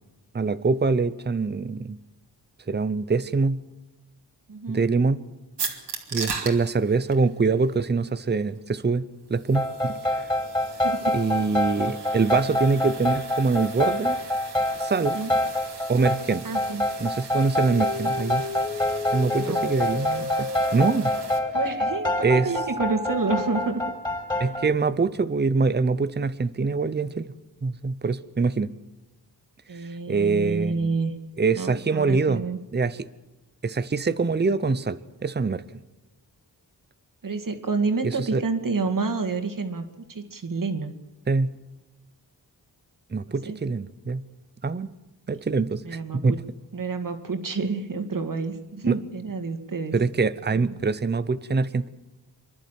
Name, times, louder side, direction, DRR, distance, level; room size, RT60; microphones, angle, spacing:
voice 1, 0.3-2.0 2.7-3.6 4.7-5.2 6.1-9.9 11.1-14.2 14.8-15.2 15.9-16.4 17.0-18.4 19.1-21.1 22.2-22.5 24.4-27.3 27.6-28.7 30.1-31.0 31.4-32.4 32.7-33.1 33.6-35.6 38.0-38.4 41.3-41.5 43.1-44.2 44.6-44.9 45.3-46.4 48.9-49.0 49.9-51.9, right 4 dB, 25° right, 14 dB, 0.8 m, -24 dB
voice 2, 4.5-4.8 10.8-11.2 15.1-15.3 16.4-16.9 19.3-19.6 21.5-23.8 24.5-24.6 29.7-31.1 31.5-32.6 37.2-40.9 43.4-43.6 45.8-46.4 46.7-49.9 50.5-50.7, right 4 dB, 50° right, 6 dB, 2.4 m, -29 dB
sound 1, 5.6-21.4, right 5 dB, 85° right, 2.6 m, -40 dB
sound 2, 9.5-24.7, left 1 dB, 10° left, 5.1 m, -27 dB
sound 3, 17.6-23.6, left 2 dB, 65° left, 4.2 m, -34 dB
27.0 x 11.5 x 9.2 m, 1.0 s
wide cardioid pair, 80°, 40 cm